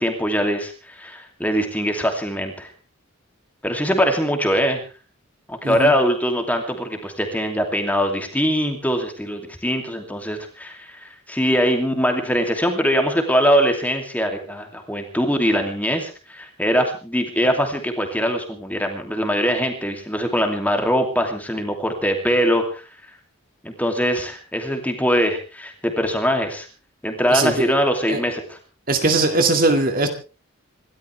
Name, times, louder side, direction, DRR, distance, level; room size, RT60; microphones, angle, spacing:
voice 1, 0.0-2.7 3.6-4.8 5.5-22.8 23.6-26.7 27.0-28.6, equal, 5° left, 4 dB, 2.7 m, -22 dB
voice 2, 27.3-27.8 28.1-28.2 28.9-30.1, right 2 dB, 40° right, 6 dB, 2.2 m, -20 dB
27.0 x 13.0 x 3.4 m, 0.34 s
head